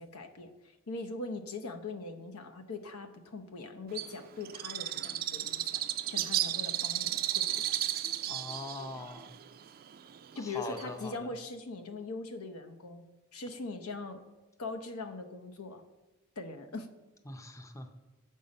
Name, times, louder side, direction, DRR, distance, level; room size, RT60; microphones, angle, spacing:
voice 1, 0.0-5.8 6.1-7.6 10.3-13.0 13.3-14.2 14.6-15.8 16.4-16.9, left 3 dB, 85° left, 6 dB, 0.8 m, -41 dB
Bird, 3.9-11.2, right 12 dB, 45° right, 0.3 m, -34 dB
voice 2, 8.3-9.3 10.4-11.3 17.3-17.9, left 2 dB, 15° left, 6 dB, 0.5 m, -42 dB
7.7 x 5.5 x 5.3 m, 1.1 s
head